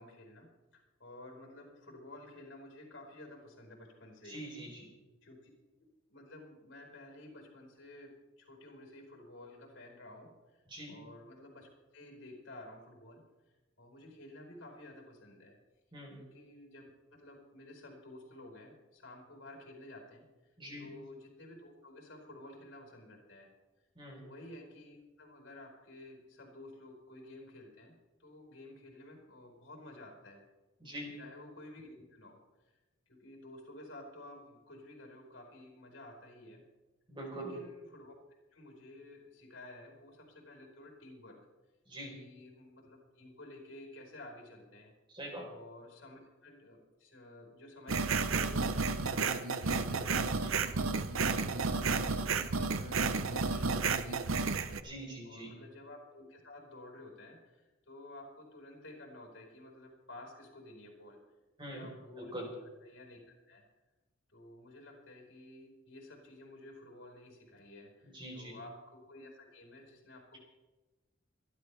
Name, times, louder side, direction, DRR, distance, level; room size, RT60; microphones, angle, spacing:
voice 1, 0.0-4.4 5.2-5.5 6.1-13.2 13.8-15.6 16.2-23.5 24.2-30.4 31.2-32.4 32.6-32.7 33.1-36.6 37.3-38.1 38.5-41.4 42.1-44.9 45.5-50.9 51.5-54.5 55.2-61.2 61.7-62.5 62.8-63.6 64.3-70.4, left 1 dB, 65° left, 1 dB, 4.7 m, -52 dB
voice 2, 4.3-4.9 10.7-11.0 15.9-16.2 20.6-20.9 24.0-24.2 30.8-31.1 37.1-37.5 41.9-42.2 45.1-45.5 50.4-50.6 54.8-55.5 61.6-61.9 62.2-62.5 68.1-68.6, right 1 dB, 25° right, -1 dB, 4.2 m, -44 dB
sound 1, 47.9-54.8, right 4 dB, 85° right, 0.8 m, -32 dB
26.0 x 11.5 x 3.5 m, 1.1 s
head